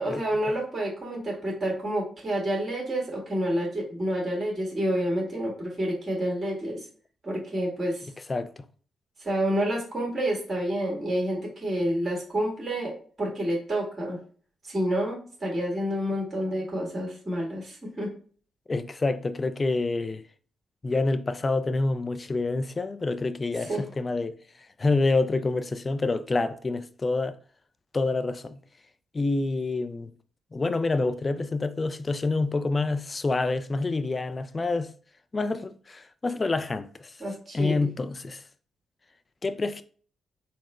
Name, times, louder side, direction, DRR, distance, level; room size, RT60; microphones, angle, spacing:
voice 1, 0.0-6.9 7.2-8.1 9.2-14.2 14.6-18.1 23.6-23.8 37.2-37.9, right 1 dB, 40° right, 1.9 m, -29 dB
voice 2, 18.7-20.2 20.8-24.3 24.8-27.4 27.9-28.6 29.1-30.1 30.5-34.9 35.3-37.1 37.5-38.4 39.4-39.8, left 3 dB, 35° left, 0.4 m, -27 dB
4.1 x 2.1 x 4.3 m
hypercardioid pair, 40°, 0 cm